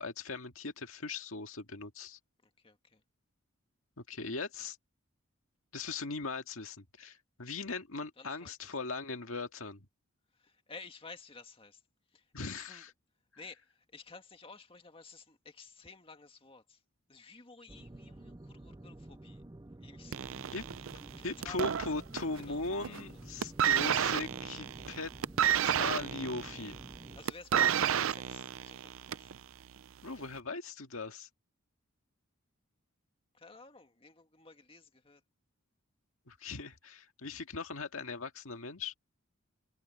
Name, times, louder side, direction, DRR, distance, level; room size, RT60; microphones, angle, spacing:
voice 1, 0.0-2.2 4.0-4.8 5.7-9.9 12.3-12.9 20.5-20.6 21.2-25.1 25.6-26.8 30.0-31.3 36.3-38.9, left 3 dB, 75° left, 2.0 m, -39 dB
voice 2, 2.4-3.0 8.2-8.7 10.3-11.8 12.1-12.8 13.4-16.8 17.1-19.4 19.8-20.2 21.1-22.0 22.3-23.2 27.1-29.3 33.3-35.2, left 4 dB, 25° left, 2.0 m, -53 dB
sound 1, 17.7-27.2, right 1 dB, 15° right, 0.5 m, -50 dB
sound 2, 20.1-22.4 22.7-23.1 23.4-29.4 30.2-30.3, right 9 dB, 70° right, 0.5 m, -31 dB
head